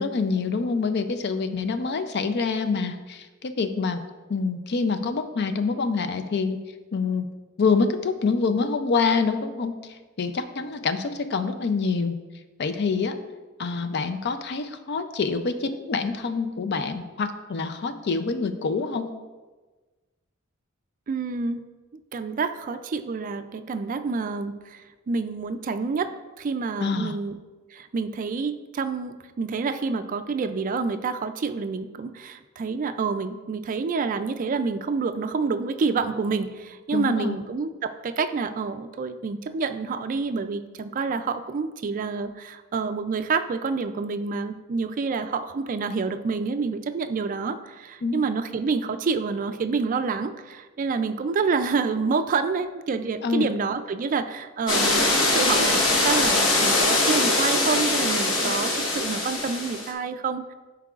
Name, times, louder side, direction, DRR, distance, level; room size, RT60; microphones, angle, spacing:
voice 1, 0.0-4.0 4.3-6.6 6.9-7.3 7.6-12.2 12.6-13.2 13.6-19.1 26.8-27.1 36.9-37.4 48.0-48.2 53.2-53.4 58.4-58.5, left 4 dB, 55° left, 9 dB, 0.5 m, -26 dB
voice 2, 21.1-21.6 22.1-26.1 26.4-27.4 27.7-60.5, right 4 dB, 40° right, 10 dB, 0.3 m, -28 dB
sound 1, 54.7-59.9, left 2 dB, 70° left, 1.1 m, -22 dB
11.0 x 4.6 x 2.4 m, 1.3 s
head